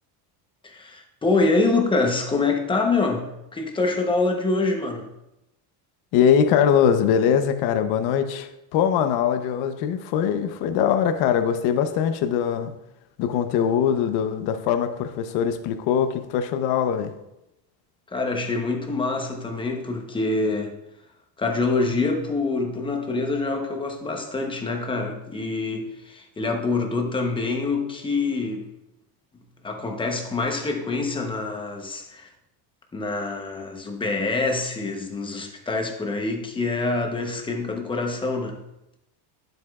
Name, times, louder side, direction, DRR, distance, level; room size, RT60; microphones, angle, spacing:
voice 1, 0.6-5.1 18.1-20.7 21.4-28.6 29.6-32.3 32.9-38.6, left 3 dB, 10° left, 2 dB, 0.8 m, -25 dB
voice 2, 6.1-12.7 13.2-17.1, left 8 dB, 50° left, 8 dB, 0.8 m, -22 dB
11.0 x 7.8 x 2.4 m, 0.88 s
cardioid pair, 160°, 49 cm